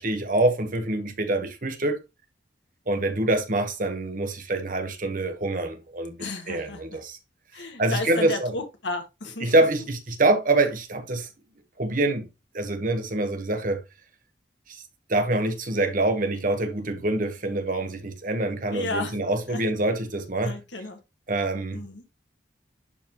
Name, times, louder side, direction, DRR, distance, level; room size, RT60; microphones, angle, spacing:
voice 1, 0.0-2.0 2.9-6.2 6.5-7.2 7.8-8.5 9.4-11.3 11.8-12.3 12.5-13.8 14.7-14.8 15.1-20.5 21.3-21.8, right 2 dB, 45° right, 1.2 m, -25 dB
voice 2, 6.2-7.0 7.5-9.5 18.7-19.2 19.5-19.6 20.4-21.0 21.7-22.0, left 2 dB, 75° left, 1.8 m, -33 dB
11.0 x 4.0 x 3.0 m
head